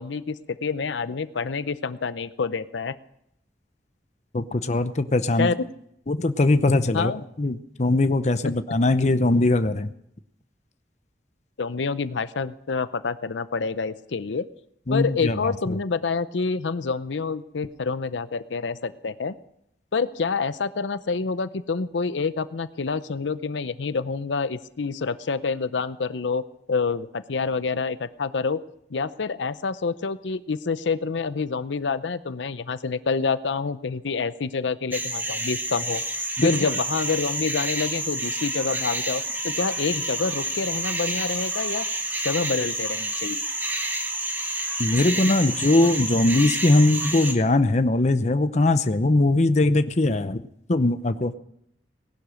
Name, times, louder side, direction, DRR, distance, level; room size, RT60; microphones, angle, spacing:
voice 1, 0.0-2.9 5.4-5.6 6.9-7.2 11.6-14.5 14.9-19.3 19.9-26.4 26.7-28.6 28.9-36.0 36.4-41.9 42.2-43.4, left 4 dB, 85° left, 14 dB, 0.6 m, -27 dB
voice 2, 4.3-5.5 6.1-7.1 7.4-9.9 14.9-15.8 36.4-36.7 44.8-50.4 50.7-51.4, left 2 dB, 40° left, 11 dB, 0.8 m, -21 dB
sound 1, 34.9-47.3, right 1 dB, 10° right, 1.6 m, -29 dB
18.5 x 11.5 x 6.3 m, 0.76 s
head